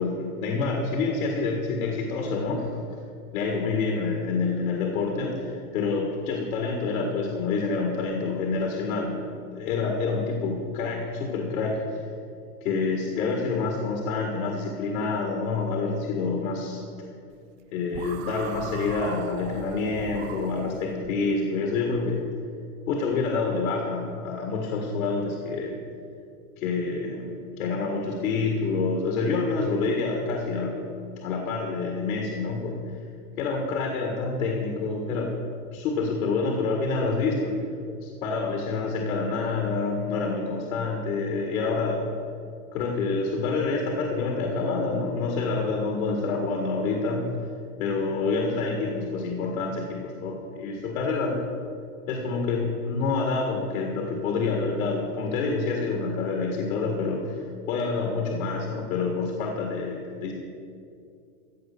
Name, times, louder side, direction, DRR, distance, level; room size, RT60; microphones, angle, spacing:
voice 1, 0.0-2.7 3.3-12.0 12.6-16.8 17.7-22.3 22.9-25.8 26.6-33.0 33.4-35.4 35.7-37.6 38.0-42.1 42.7-47.3 47.8-51.4 52.1-60.3, left 4 dB, 70° left, 1 dB, 1.9 m, -27 dB
sound 1, 17.9-21.1, right 10 dB, 60° right, 0.7 m, -39 dB
15.5 x 5.2 x 8.6 m, 2.5 s
supercardioid pair, 165°, 43 cm